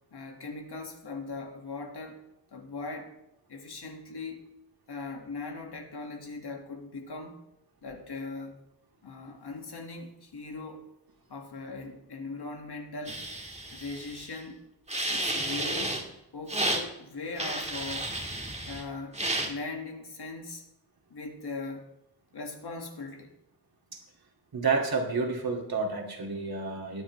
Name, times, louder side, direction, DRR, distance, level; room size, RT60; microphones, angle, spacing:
voice 1, 0.1-2.2 2.5-3.1 3.5-4.4 4.9-7.4 7.8-8.6 9.0-10.9 11.3-13.2 13.7-14.6 15.1-16.0 16.3-18.1 18.7-20.6 21.1-21.9 22.3-23.3, left 3 dB, 60° left, 2 dB, 2.1 m, -39 dB
sound 1, 13.0-14.4 14.9-16.0 16.5-16.8 17.4-18.8 19.1-19.5, right 1 dB, 15° right, 1.8 m, -32 dB
voice 2, 24.5-27.0, right 4 dB, 55° right, 0 dB, 2.5 m, -29 dB
21.0 x 7.1 x 3.3 m, 0.85 s
cardioid pair, 80°, 44 cm